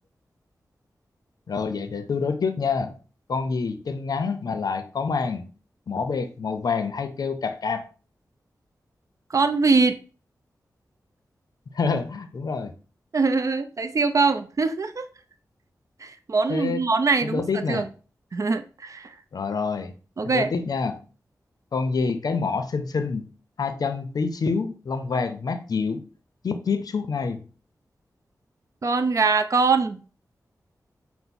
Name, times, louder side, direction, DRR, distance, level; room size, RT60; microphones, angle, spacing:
voice 1, 1.5-2.9 3.3-5.5 5.9-7.9 11.7-12.7 16.5-16.8 17.3-17.9 19.3-19.9 20.2-21.0 21.7-23.3 23.6-26.0 26.4-27.4, left 5 dB, 70° left, 0.5 m, -27 dB
voice 2, 9.3-10.0 13.1-15.1 16.0-17.9 18.3-19.1 20.2-20.5 28.8-30.0, right 4 dB, 55° right, 0.4 m, -23 dB
5.6 x 2.0 x 4.0 m
cardioid pair, 60°, 7 cm